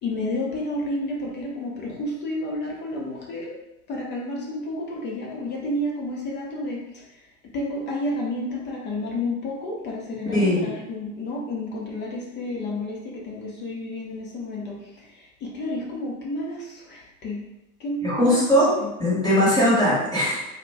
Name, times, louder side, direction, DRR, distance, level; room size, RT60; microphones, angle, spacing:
voice 1, 0.0-3.5 3.9-7.0 7.5-14.8 15.4-17.4 17.8-18.9, left 1 dB, 25° left, -3 dB, 0.5 m, -31 dB
voice 2, 10.3-10.6 18.0-18.7 19.0-20.5, equal, 10° left, -8 dB, 1.0 m, -20 dB
2.3 x 2.1 x 3.3 m, 0.89 s
hypercardioid pair, 100°, 45 cm